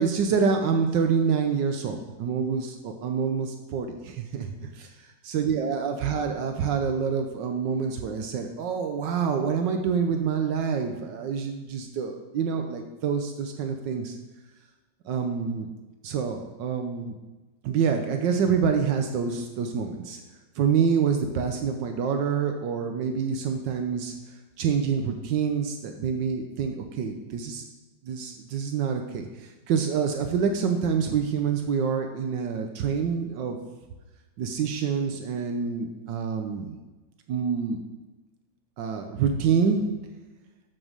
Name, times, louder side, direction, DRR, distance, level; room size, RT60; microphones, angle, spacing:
voice 1, 0.0-4.9 5.3-14.2 15.0-15.7 16.0-17.1 17.6-20.2 20.6-24.1 24.6-27.6 28.0-33.6 34.4-36.8 37.3-37.8 38.8-39.9, right 6 dB, 80° right, 5 dB, 1.4 m, -27 dB
7.0 x 6.1 x 6.4 m, 1.2 s
omnidirectional pair, 1.9 m